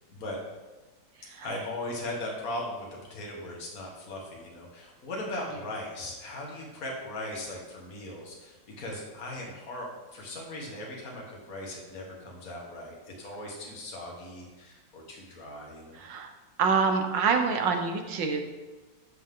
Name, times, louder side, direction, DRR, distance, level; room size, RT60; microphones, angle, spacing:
voice 1, 1.4-16.0, left 1 dB, 50° left, -2 dB, 2.2 m, -38 dB
voice 2, 16.0-16.3 16.6-18.4, right 5 dB, 85° right, 5 dB, 1.7 m, -26 dB
14.0 x 5.9 x 3.8 m, 1.2 s
omnidirectional pair, 1.9 m